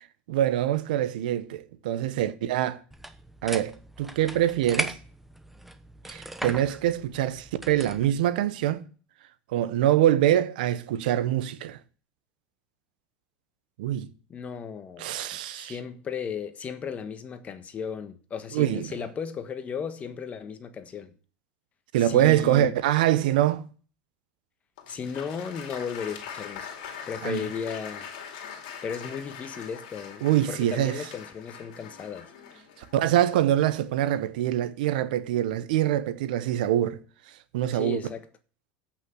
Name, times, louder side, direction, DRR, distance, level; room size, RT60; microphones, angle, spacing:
voice 1, 0.3-2.8 3.4-4.9 6.1-8.9 9.5-11.8 13.8-14.1 15.0-15.7 18.5-18.9 21.9-23.7 27.2-27.5 30.2-31.1 32.9-37.0 37.5-38.0, right 12 dB, 80° right, 1.0 m, -24 dB
sound 1, 2.9-8.1, right 1 dB, 5° right, 1.0 m, -38 dB
voice 2, 14.3-21.1 22.0-22.7 24.9-26.7 27.1-28.1 28.8-32.3 37.7-38.3, left 6 dB, 30° left, 1.3 m, -35 dB
Applause, 24.8-33.7, left 7 dB, 80° left, 2.4 m, -42 dB
8.3 x 6.0 x 7.9 m
supercardioid pair, 110°, 5 cm